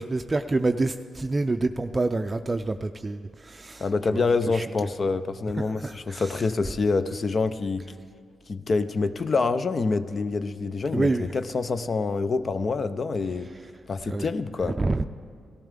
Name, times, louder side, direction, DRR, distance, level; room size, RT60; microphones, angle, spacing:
voice 1, 0.0-3.9 4.1-4.2 4.5-4.7 5.8-6.3 10.9-11.3 14.1-14.3 14.6-15.0, right 2 dB, 30° right, 7 dB, 0.4 m, -27 dB
voice 2, 3.8-7.9 8.5-13.5 13.9-14.8, left 4 dB, 50° left, 12 dB, 0.6 m, -26 dB
17.0 x 13.5 x 3.7 m, 2.2 s
supercardioid pair, 50°, 0 cm